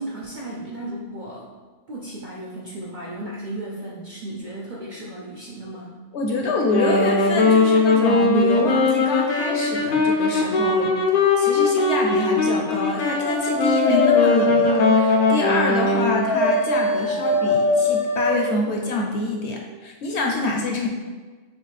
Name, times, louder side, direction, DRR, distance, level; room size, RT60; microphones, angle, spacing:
voice 1, 0.0-1.5 1.9-5.9, right 1 dB, 55° right, -4 dB, 0.5 m, -35 dB
voice 2, 6.1-10.9 11.4-20.9, left 2 dB, 65° left, 1 dB, 0.8 m, -26 dB
Wind instrument woodwind instrument, 6.6-16.3, left 3 dB, 85° left, 1.1 m, -20 dB
Dog, 12.9-18.5, left 2 dB, 35° left, 0.5 m, -23 dB
6.1 x 2.4 x 3.2 m, 1.4 s
omnidirectional pair, 1.4 m